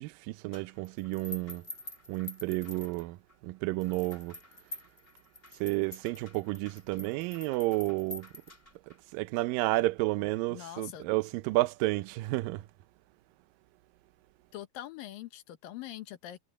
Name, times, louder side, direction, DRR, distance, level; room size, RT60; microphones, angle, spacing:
voice 1, 0.0-1.6 2.1-3.2 3.4-4.4 5.6-8.3 9.1-12.7, right 21 dB, 80° right, 2.0 m, -31 dB
sound 1, 0.5-3.3 3.8-9.0, left 2 dB, 15° left, 2.9 m, -47 dB
voice 2, 10.5-11.1 14.5-16.4, left 13 dB, 70° left, 2.6 m, -43 dB
omnidirectional pair, 4.6 m